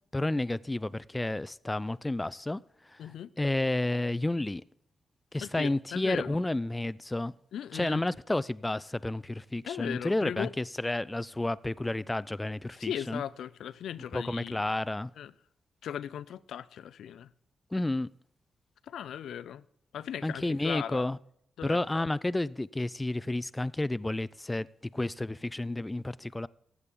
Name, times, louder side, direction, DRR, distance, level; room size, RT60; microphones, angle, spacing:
voice 1, 0.1-4.6 5.3-7.3 7.7-13.2 14.1-15.1 17.7-18.1 20.2-21.2 21.6-24.7 24.9-26.5, left 2 dB, 15° left, 0.3 m, -31 dB
voice 2, 3.0-3.3 5.4-6.4 7.5-8.0 9.7-10.5 12.8-14.6 15.2-15.3 15.8-17.3 18.9-19.6 19.9-21.1 21.6-22.1, left 9 dB, 85° left, 0.4 m, -38 dB
15.0 x 8.4 x 3.7 m
cardioid pair, 80°, 0 cm